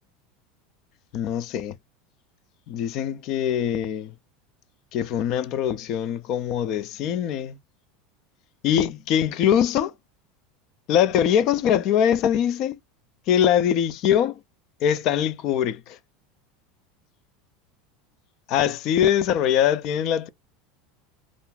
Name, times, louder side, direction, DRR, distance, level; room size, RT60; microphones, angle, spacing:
voice 1, 1.1-1.8 2.7-4.1 4.9-7.6 8.6-9.9 10.9-12.8 13.3-14.4 14.8-16.0 18.5-20.3, left 9 dB, 55° left, 0.4 m, -22 dB
2.5 x 2.2 x 3.2 m
hypercardioid pair, 85°, 0 cm